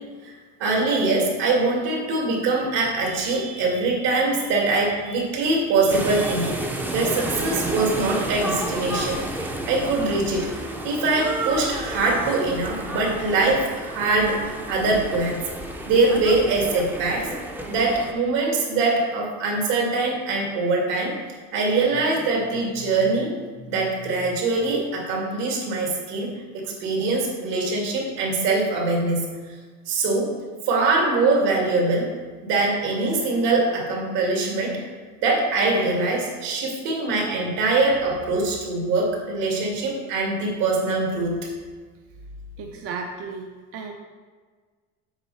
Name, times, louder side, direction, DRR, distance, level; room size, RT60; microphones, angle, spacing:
voice 1, 0.6-6.6 6.9-15.4 15.9-17.3 17.7-21.2 21.5-29.5 29.9-30.4 30.6-32.1 32.4-34.8 35.2-41.4, right 3 dB, 70° right, -1 dB, 2.5 m, -23 dB
sound 1, 5.9-18.1, right 1 dB, 5° right, 0.5 m, -31 dB
voice 2, 42.6-43.9, right 4 dB, 45° right, 2 dB, 0.6 m, -34 dB
8.0 x 5.5 x 4.1 m, 1.5 s
cardioid pair, 145°, 32 cm